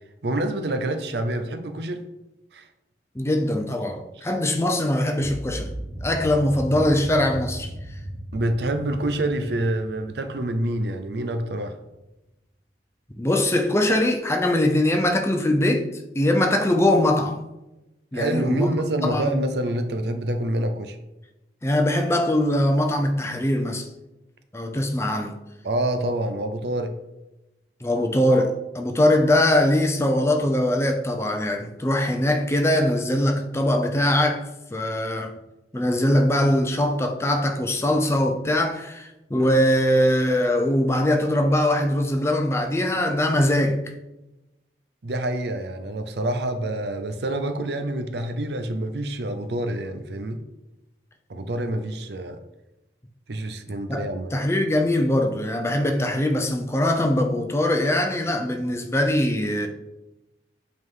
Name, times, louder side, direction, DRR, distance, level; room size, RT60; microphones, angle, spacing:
voice 1, 0.2-2.0 2.5-2.7 8.3-11.7 18.1-21.0 25.6-26.9 45.0-50.4 51.3-52.4 53.3-54.3, right 1 dB, 70° right, 0.6 m, -27 dB
voice 2, 3.1-5.7 6.0-7.7 13.2-17.4 18.1-18.7 19.0-19.4 21.6-23.9 24.5-25.4 27.8-34.5 34.7-35.3 35.7-43.8 53.9-59.7, left 1 dB, 15° left, 0.6 m, -22 dB
sound 1, 5.1-11.2, equal, 45° right, 1.1 m, -36 dB
8.0 x 3.7 x 3.7 m
head